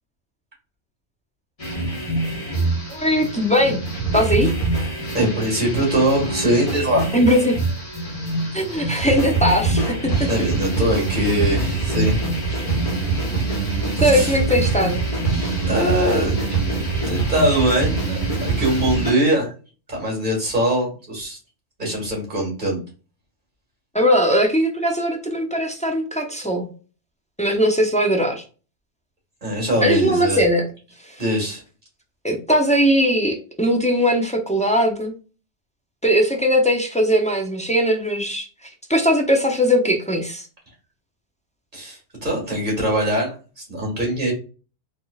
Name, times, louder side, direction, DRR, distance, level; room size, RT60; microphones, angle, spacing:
sound 1, 1.6-19.1, right 3 dB, 30° left, 1.3 m, -24 dB
voice 1, 2.9-3.8 4.1-4.5 7.1-7.6 8.5-10.3 14.0-15.0 23.9-26.7 27.4-28.4 29.8-30.7 31.0-31.2 32.2-35.1 36.0-38.5 38.9-40.5, equal, 10° left, 2 dB, 0.4 m, -19 dB
voice 2, 5.1-7.1 8.0-8.2 10.3-12.2 14.0-14.4 15.7-16.3 17.1-19.5 19.9-21.4 21.8-22.8 29.4-30.4 31.2-31.6 41.7-44.3, right 1 dB, 40° right, -2 dB, 1.9 m, -22 dB
4.0 x 3.1 x 2.3 m, 0.35 s
omnidirectional pair, 1.2 m